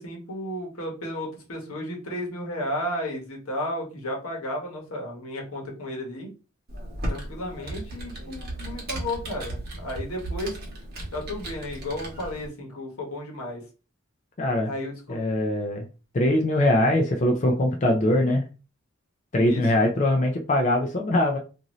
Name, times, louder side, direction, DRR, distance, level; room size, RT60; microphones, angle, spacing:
voice 1, 0.0-6.3 7.1-10.5 11.1-13.6 14.6-15.2 19.3-19.6, left 1 dB, 85° left, 0 dB, 1.1 m, -33 dB
Computer keyboard, 6.7-12.5, right 1 dB, 45° right, 1.0 m, -35 dB
voice 2, 14.4-14.7 15.1-15.9 16.1-18.4 19.3-21.4, left 1 dB, 35° left, 1 dB, 0.4 m, -22 dB
2.6 x 2.5 x 3.0 m, 0.33 s
head